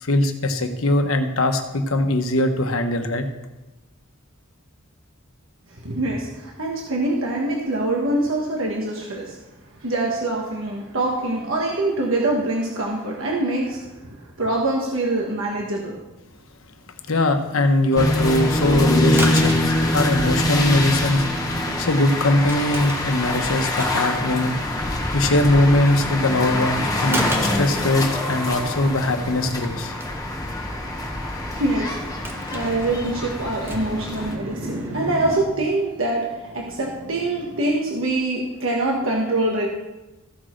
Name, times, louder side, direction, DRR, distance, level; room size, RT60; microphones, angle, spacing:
voice 1, 0.0-3.3 17.1-24.6 25.1-29.9, left 1 dB, 80° left, 6 dB, 1.1 m, -21 dB
voice 2, 5.8-9.3 9.8-16.0 31.5-39.7, right 2 dB, 70° right, -1 dB, 1.5 m, -24 dB
sound 1, 17.9-35.5, right 1 dB, 10° right, 0.9 m, -34 dB
sound 2, 18.0-34.3, left 1 dB, 15° left, 1.3 m, -25 dB
14.5 x 6.4 x 4.6 m, 1.1 s
head